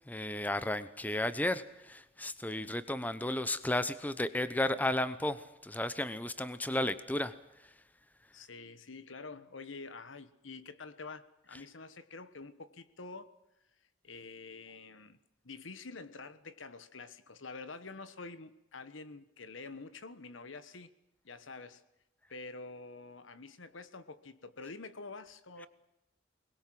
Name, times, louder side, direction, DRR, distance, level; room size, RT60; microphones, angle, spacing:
voice 1, 0.1-7.3, left 1 dB, 10° left, 13 dB, 0.9 m, -33 dB
voice 2, 8.3-13.3 14.0-15.2 15.4-20.9 21.2-21.8 22.3-25.7, left 3 dB, 85° left, 13 dB, 1.3 m, -47 dB
23.0 x 21.0 x 7.7 m, 0.93 s
head